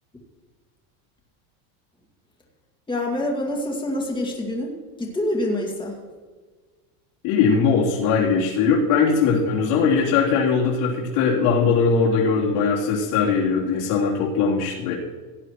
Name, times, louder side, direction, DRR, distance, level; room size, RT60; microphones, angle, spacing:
voice 1, 2.9-6.0, left 1 dB, 10° left, -1 dB, 2.3 m, -26 dB
voice 2, 7.2-15.0, left 5 dB, 60° left, -4 dB, 3.5 m, -20 dB
17.5 x 10.0 x 3.1 m, 1.4 s
supercardioid pair, 135°, 46 cm